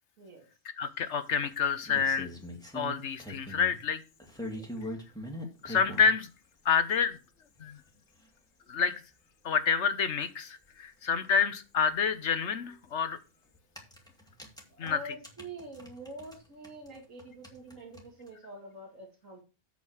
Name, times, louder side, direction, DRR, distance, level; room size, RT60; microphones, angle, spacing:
voice 1, 0.8-2.3 2.7-4.0 5.6-6.3 6.6-7.2 7.6-7.8 8.7-8.9 9.4-13.2 14.8-15.1, left 6 dB, 65° left, 12 dB, 1.3 m, -28 dB
sound 1, 1.4-3.8 4.2-6.1 7.0-7.1 7.6-7.7 7.9-8.0 8.2-8.3 10.3-10.4 10.6-10.7 12.7-12.9 13.5-16.4 16.6-18.3, equal, 5° left, 2.4 m, -42 dB
voice 2, 14.7-19.4, right 2 dB, 85° right, 0 dB, 2.7 m, -46 dB
8.6 x 5.4 x 6.4 m, 0.30 s
omnidirectional pair, 1.3 m